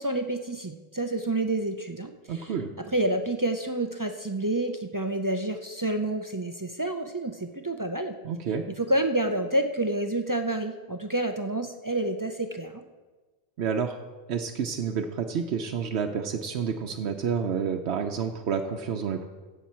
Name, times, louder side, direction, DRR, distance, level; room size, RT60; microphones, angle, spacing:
voice 1, 0.0-8.1 8.8-12.8, right 1 dB, 25° right, 5 dB, 0.4 m, -29 dB
voice 2, 2.3-2.7 8.2-8.6 13.6-14.0 14.3-19.3, right 6 dB, 85° right, 3 dB, 1.0 m, -29 dB
15.5 x 6.9 x 4.5 m, 1.3 s
omnidirectional pair, 1.1 m